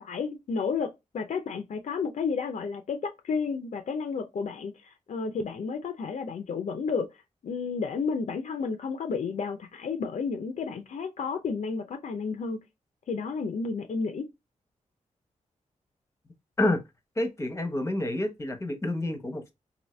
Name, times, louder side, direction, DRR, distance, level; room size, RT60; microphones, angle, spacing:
voice 1, 0.0-4.7 5.1-7.1 7.4-12.6 13.1-14.3, left 5 dB, 70° left, 0.6 m, -31 dB
voice 2, 17.2-19.5, left 1 dB, 20° left, 0.9 m, -28 dB
2.7 x 2.7 x 3.1 m
cardioid pair, 75°, 13 cm